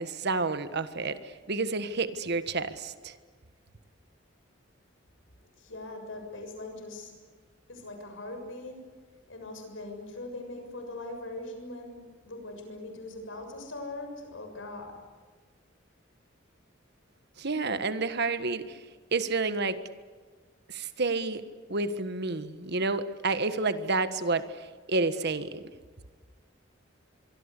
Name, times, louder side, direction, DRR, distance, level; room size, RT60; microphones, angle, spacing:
voice 1, 0.0-3.2 17.4-18.8 19.1-19.8 20.7-21.4 21.7-25.6, right 3 dB, 55° right, 11 dB, 1.5 m, -30 dB
voice 2, 5.6-7.1 7.7-8.8 9.3-12.0 12.2-14.9, left 2 dB, 70° left, 5 dB, 7.1 m, -41 dB
25.5 x 24.0 x 8.4 m, 1.5 s
head